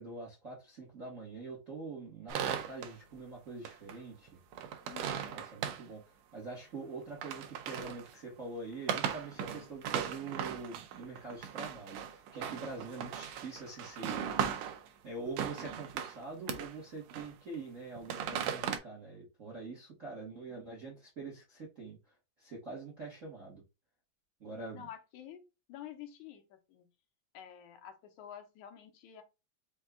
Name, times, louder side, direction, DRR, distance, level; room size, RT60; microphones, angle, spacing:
voice 1, 0.0-4.4 5.3-14.7 15.0-22.0 22.4-23.6 24.4-24.9, right 3 dB, 50° right, 0.9 m, -45 dB
sound 1, 2.3-2.9 3.6-4.0 4.3-5.8 7.0-8.1 8.7-14.9 15.3-16.2 16.5-16.8 17.1-17.5 18.0-18.8, right 8 dB, 75° right, 1.7 m, -37 dB
voice 2, 4.8-5.4 20.2-20.6 24.7-25.4 25.7-26.9 27.3-29.2, left 10 dB, 75° left, 2.2 m, -49 dB
5.3 x 2.3 x 3.5 m
omnidirectional pair, 3.4 m